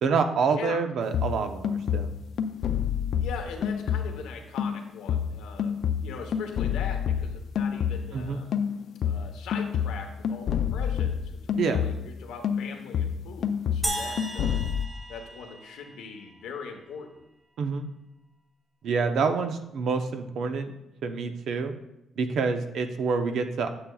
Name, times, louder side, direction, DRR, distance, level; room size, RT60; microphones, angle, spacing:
voice 1, 0.0-2.1 8.1-8.4 11.6-11.8 17.6-17.9 18.8-20.7 21.0-21.7 22.2-23.7, right 5 dB, 70° right, 7 dB, 0.7 m, -27 dB
sound 1, 1.1-4.3 4.6-8.2 8.5-12.2 12.4-14.9, left 8 dB, 65° left, 0.4 m, -28 dB
voice 2, 3.2-8.5 9.0-14.6 15.1-17.3, left 5 dB, 90° left, 4 dB, 1.0 m, -41 dB
sound 2, 13.8-16.3, right 1 dB, 20° right, 1.7 m, -35 dB
8.5 x 6.9 x 2.3 m, 0.87 s
cardioid pair, 90°, 0 cm